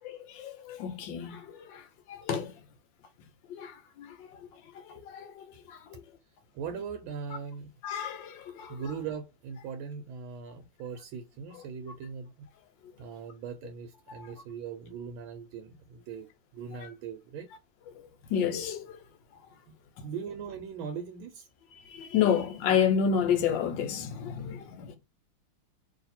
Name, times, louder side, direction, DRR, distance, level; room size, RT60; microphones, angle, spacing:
voice 1, 0.0-2.5 3.5-4.5 4.7-6.0 7.8-8.8 14.2-14.3 16.8-16.9 17.9-19.0 21.9-25.0, left 8 dB, 70° left, 1.3 m, -31 dB
voice 2, 6.5-7.7 8.7-12.5 13.0-16.3 16.5-17.5 19.7-19.8 20.0-21.5, right 6 dB, 80° right, 1.4 m, -40 dB
3.2 x 2.8 x 4.1 m
omnidirectional pair, 2.4 m